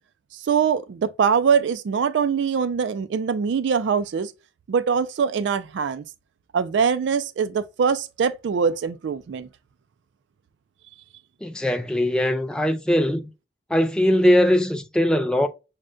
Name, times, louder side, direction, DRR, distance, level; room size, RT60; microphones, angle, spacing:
voice 1, 0.3-4.3 4.7-6.0 6.5-9.5, right 6 dB, 85° right, 0.3 m, -23 dB
voice 2, 11.4-13.3 13.7-15.5, left 1 dB, 5° left, 0.3 m, -20 dB
6.4 x 2.2 x 2.4 m
head